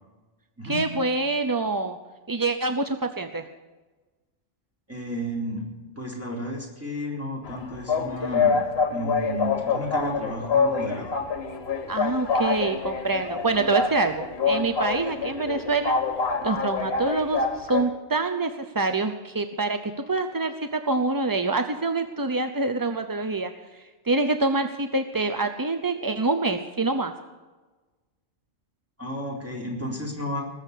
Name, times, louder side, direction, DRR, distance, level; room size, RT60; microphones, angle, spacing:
voice 1, 0.7-2.0 2.3-3.4 11.9-16.0 16.4-23.5 24.0-27.1, right 3 dB, 30° right, 7 dB, 0.4 m, -26 dB
voice 2, 4.9-5.7 6.0-8.6 8.9-11.1 29.0-30.4, equal, 10° right, -3 dB, 3.8 m, -32 dB
sound 1, 7.5-17.9, left 5 dB, 55° left, 1.5 m, -26 dB
19.5 x 7.4 x 8.3 m, 1.2 s
omnidirectional pair, 1.3 m